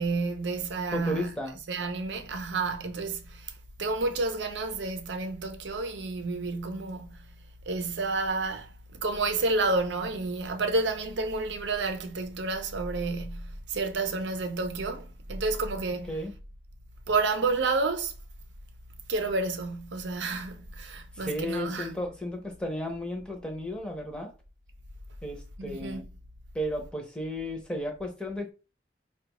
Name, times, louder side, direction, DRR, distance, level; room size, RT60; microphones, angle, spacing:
voice 1, 0.0-1.3 1.7-3.5 3.8-7.3 7.7-16.2 17.1-18.1 19.1-21.9 25.6-26.0, right 3 dB, 90° right, 0.6 m, -30 dB
voice 2, 0.9-1.6 16.1-16.3 21.1-24.3 25.2-26.0 26.5-28.5, left 1 dB, 5° left, 0.7 m, -34 dB
4.7 x 2.3 x 2.9 m
head